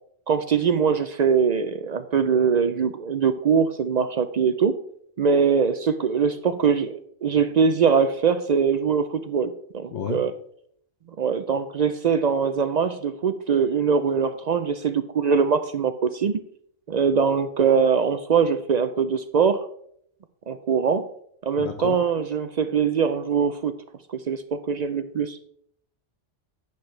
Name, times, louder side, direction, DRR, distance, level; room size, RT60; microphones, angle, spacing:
voice 1, 0.3-4.8 5.2-10.3 11.2-16.4 16.9-19.7 20.5-21.1 21.4-23.8 24.1-25.4, right 6 dB, 65° right, 10 dB, 0.4 m, -22 dB
voice 2, 9.9-10.2 21.6-22.0, left 6 dB, 65° left, 7 dB, 1.0 m, -31 dB
10.5 x 8.3 x 3.2 m, 0.67 s
omnidirectional pair, 1.2 m